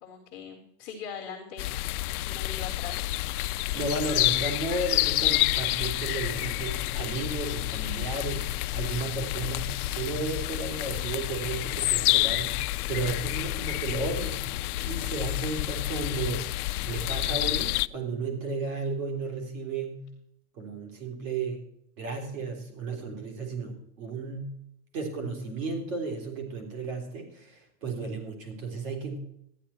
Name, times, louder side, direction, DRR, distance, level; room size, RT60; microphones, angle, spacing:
voice 1, 0.0-1.7 2.3-3.0, left 7 dB, 5° left, -13 dB, 0.3 m, -41 dB
sound 1, 1.6-17.9, left 17 dB, 75° left, 0.5 m, -29 dB
voice 2, 3.7-14.4 14.8-16.5 16.8-20.0 20.6-21.6 22.0-24.6 24.9-29.2, right 3 dB, 55° right, 4 dB, 3.6 m, -34 dB
13.0 x 10.0 x 4.3 m, 0.76 s
supercardioid pair, 180°, 45 cm